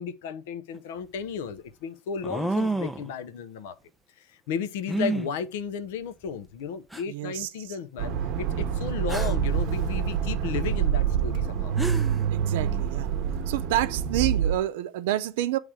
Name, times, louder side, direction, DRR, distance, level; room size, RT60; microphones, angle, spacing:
voice 1, 0.0-3.8 4.2-11.7, left 7 dB, 80° left, 0.7 m, -34 dB
sound 1, 0.7-0.8 2.2-3.1 4.9-5.3 6.3-6.4 6.9-7.0 9.1-9.5 11.4-11.5 11.8-12.2, right 2 dB, ahead, 0.4 m, -29 dB
voice 2, 7.1-7.5 12.3-13.1 13.5-15.6, right 13 dB, 80° right, 0.5 m, -28 dB
Accelerating revving vroom, 8.0-14.6, right 8 dB, 45° right, 0.8 m, -26 dB
8.8 x 3.2 x 4.8 m
cardioid pair, 170°, 0 cm